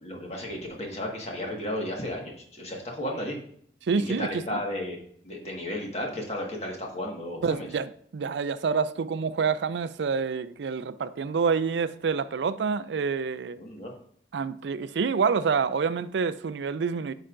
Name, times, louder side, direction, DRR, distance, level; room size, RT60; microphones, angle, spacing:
voice 1, 0.0-3.4 3.9-5.0 5.2-7.7 13.6-13.9, left 1 dB, 35° left, 1.6 m, -34 dB
voice 2, 3.9-4.6 7.4-13.6 14.3-17.1, right 5 dB, 80° right, 0.4 m, -27 dB
9.7 x 5.6 x 2.5 m
head